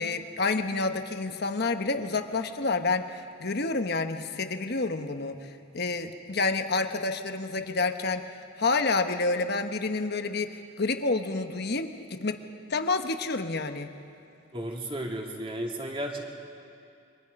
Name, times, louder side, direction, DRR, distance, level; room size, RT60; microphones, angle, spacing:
voice 1, 0.0-12.4 12.7-13.9, left 3 dB, 55° left, 7 dB, 1.2 m, -29 dB
voice 2, 14.5-16.2, right 1 dB, 25° right, 0 dB, 2.7 m, -33 dB
28.0 x 24.5 x 5.4 m, 2.6 s
head